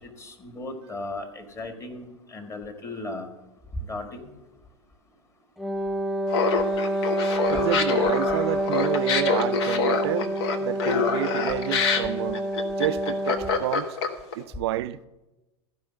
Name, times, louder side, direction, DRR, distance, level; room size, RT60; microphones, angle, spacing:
voice 1, 0.0-3.3 3.9-4.3, left 2 dB, 20° left, 1.7 m, -36 dB
Wind instrument woodwind instrument, 5.6-13.7, right 1 dB, ahead, 0.4 m, -28 dB
Laughter, 6.3-14.3, left 5 dB, 60° left, 1.3 m, -26 dB
voice 2, 7.4-12.4 12.8-14.0 14.4-15.0, right 14 dB, 60° right, 0.4 m, -29 dB
13.5 x 5.4 x 7.4 m
figure-of-eight pair, 90°, 15 cm